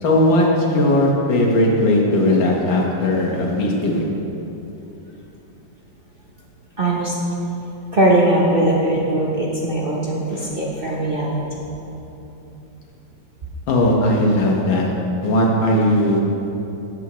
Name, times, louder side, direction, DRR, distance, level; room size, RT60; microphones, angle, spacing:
voice 1, 0.0-4.0 13.7-14.9 15.2-16.2, left 1 dB, 80° left, -2 dB, 2.1 m, -17 dB
voice 2, 6.8-7.1 7.9-11.7, right 1 dB, 40° right, -4 dB, 0.9 m, -20 dB
13.5 x 8.2 x 3.1 m, 2.9 s
omnidirectional pair, 2.0 m